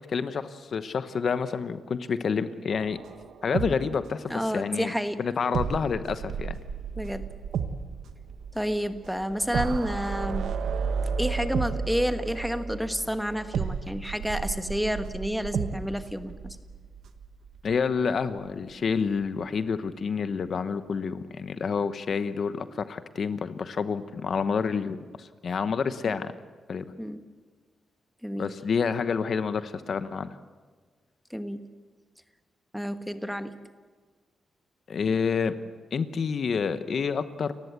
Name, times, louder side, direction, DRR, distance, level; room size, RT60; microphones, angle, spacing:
voice 1, 0.0-3.0 3.4-4.9 5.2-6.6 17.6-26.3 26.7-26.8 28.4-30.4 34.9-35.5 35.9-37.5, left 5 dB, 60° left, 11 dB, 1.0 m, -28 dB
sound 1, 2.7-4.5 4.8-4.9 5.5-18.0 18.3-18.5, right 6 dB, 85° right, 1.3 m, -33 dB
voice 2, 4.3-5.2 7.0-7.2 8.5-10.5 11.2-16.6 26.0-26.1 27.0-27.2 28.2-28.5 31.3-31.6 32.7-33.5, equal, ahead, 8 dB, 1.4 m, -30 dB
29.0 x 15.0 x 8.1 m, 1.5 s
cardioid pair, 90°, 0 cm